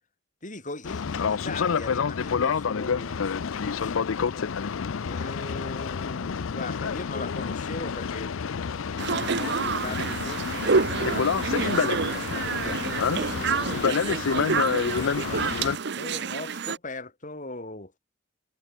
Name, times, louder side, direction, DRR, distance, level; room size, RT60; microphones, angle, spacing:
voice 1, 0.4-4.6 5.0-17.9, left 2 dB, 40° left, 6.7 m, -40 dB
Boat Water vehicle, 0.8-15.8, left 6 dB, 90° left, 0.5 m, -28 dB
sound 1, 9.0-16.8, right 5 dB, 60° right, 0.9 m, -28 dB
head